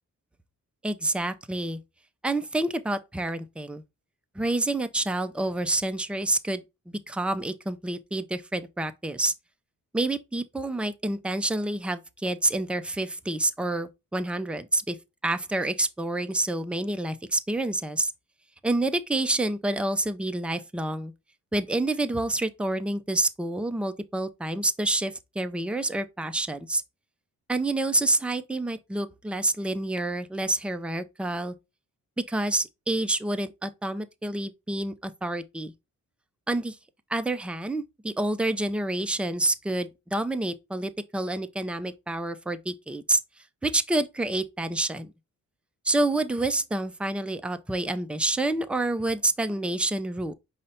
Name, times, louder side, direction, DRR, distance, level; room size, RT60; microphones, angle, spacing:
voice 1, 0.8-1.8 2.2-3.8 4.4-6.6 7.1-9.3 9.9-15.0 15.2-18.1 18.6-21.1 21.5-26.8 27.5-31.5 32.2-35.7 36.5-36.8 37.1-43.2 43.6-45.1 45.8-50.3, right 2 dB, 5° right, 0.4 m, -28 dB
5.3 x 2.1 x 4.2 m
cardioid pair, 90°, 33 cm